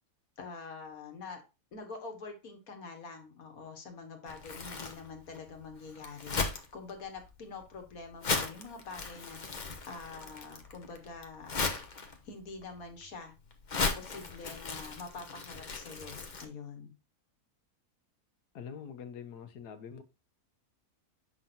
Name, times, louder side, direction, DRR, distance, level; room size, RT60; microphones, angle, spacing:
voice 1, 0.4-1.4 1.7-6.4 6.7-9.4 9.9-11.6 12.3-13.3 13.7-16.9, left 4 dB, 65° left, 1.7 m, -45 dB
Crumpling crinkling, 4.3-16.4, left 4 dB, 35° left, 0.9 m, -38 dB
voice 2, 18.5-20.0, left 7 dB, 80° left, 1.4 m, -44 dB
7.5 x 5.9 x 2.6 m
omnidirectional pair, 1.7 m